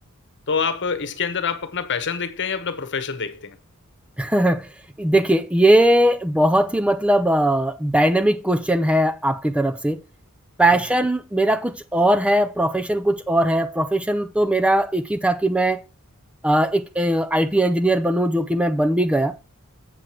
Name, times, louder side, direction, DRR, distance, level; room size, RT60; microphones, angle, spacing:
voice 1, 0.5-3.6 10.7-10.8, left 6 dB, 55° left, 1.2 m, -26 dB
voice 2, 4.2-4.7 5.0-10.0 10.6-15.8 16.4-19.3, right 1 dB, 5° right, 0.5 m, -19 dB
8.0 x 7.7 x 4.4 m
head